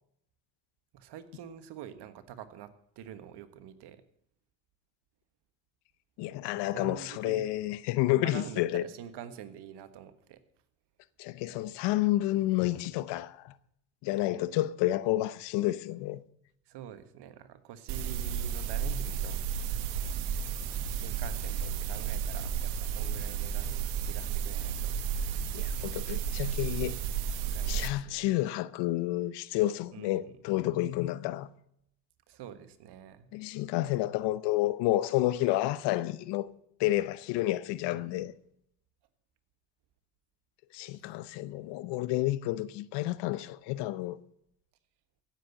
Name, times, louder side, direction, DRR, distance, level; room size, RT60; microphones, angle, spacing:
voice 1, 0.9-4.0 6.6-7.5 8.2-10.4 14.2-14.6 16.7-19.4 20.9-25.0 27.5-28.3 29.9-30.3 32.3-33.3 37.9-38.3 40.9-41.1, right 9 dB, 70° right, 1.5 m, -46 dB
voice 2, 6.2-8.8 11.2-13.5 14.0-16.2 25.5-26.9 27.7-31.5 33.3-36.5 36.8-38.3 40.7-44.2, left 16 dB, 80° left, 0.8 m, -30 dB
sound 1, 17.9-27.9, right 8 dB, 90° right, 1.3 m, -32 dB
16.0 x 7.6 x 6.9 m
supercardioid pair, 65°, 41 cm